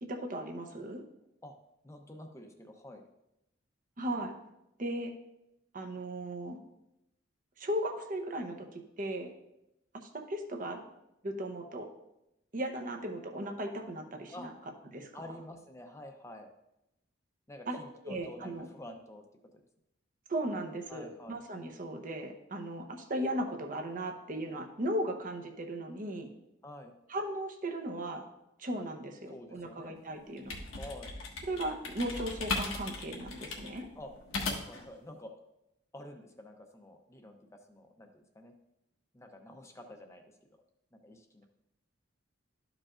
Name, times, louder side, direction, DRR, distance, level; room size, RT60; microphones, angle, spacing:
voice 1, 0.0-1.0 4.0-4.3 4.8-5.1 5.7-6.6 7.6-9.3 10.1-10.8 11.2-11.9 12.5-14.5 14.9-15.1 17.7-17.8 18.0-18.7 20.3-26.3 27.1-28.3 28.6-30.6 31.5-33.9, right 1 dB, 40° right, 4 dB, 0.8 m, -36 dB
voice 2, 1.8-3.1 14.3-14.5 15.1-16.5 17.5-19.2 20.9-21.4 26.6-26.9 29.3-29.9 30.7-31.1 34.0-34.1 34.4-35.3 35.9-38.5 39.1-40.2 40.5-40.6 40.9-41.4, left 1 dB, 15° left, 4 dB, 0.7 m, -49 dB
sound 1, 30.2-34.9, left 3 dB, 90° left, 1.3 m, -38 dB
12.5 x 4.9 x 2.5 m, 0.88 s
head